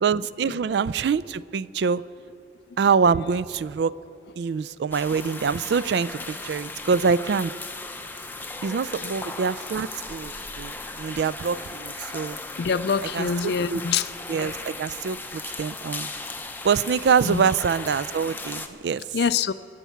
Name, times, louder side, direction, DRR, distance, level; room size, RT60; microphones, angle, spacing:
voice 1, 0.0-2.0 2.8-3.9 4.4-7.5 8.6-12.4 13.1-13.8 14.3-16.1 16.6-19.0, right 6 dB, 65° right, 19 dB, 0.3 m, -25 dB
sound 1, 4.9-18.7, left 3 dB, 10° left, 0.5 m, -37 dB
voice 2, 12.6-14.1 14.4-14.5 17.2-17.5 19.1-19.5, left 6 dB, 60° left, 16 dB, 0.4 m, -25 dB
22.0 x 8.3 x 5.7 m, 2.8 s
head